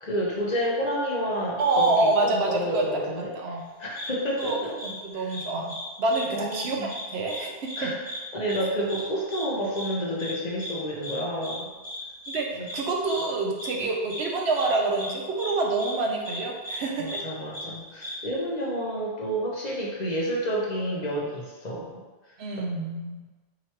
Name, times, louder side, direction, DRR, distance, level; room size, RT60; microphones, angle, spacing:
voice 1, 0.0-3.3 3.8-4.7 5.1-5.3 6.3-6.9 7.8-7.9 8.3-11.7 12.5-12.7 13.8-13.9 17.0-22.0 22.3-22.4, equal, 45° left, -4 dB, 0.7 m, -30 dB
voice 2, 1.6-2.8 3.2-3.6 4.4-7.5 7.8-7.9 12.3-17.1 22.4-23.3, right 3 dB, 75° right, 0 dB, 0.9 m, -27 dB
sound 1, 4.0-4.1 4.4-4.5 4.8-4.9 5.3-5.8 6.1-6.2 6.5-7.0 7.3-7.4 7.7-7.8 8.1-8.2 8.5-8.6 8.9-9.0 9.3-9.4 9.7-9.9 10.2-10.3 10.6-10.7 11.0-11.2 11.4-11.6 11.8-12.0 12.2-12.4 12.7-12.8 13.1-13.2 13.6-13.7 14.1-14.2 14.6-14.7 15.0-15.1 15.4-15.5 15.8-15.9 16.2-16.4 16.6-16.8 17.1-17.2 17.5-17.6 18.0-18.1, left 1 dB, 10° right, 1.1 m, -36 dB
3.0 x 2.8 x 4.4 m, 1.3 s
omnidirectional pair, 1.1 m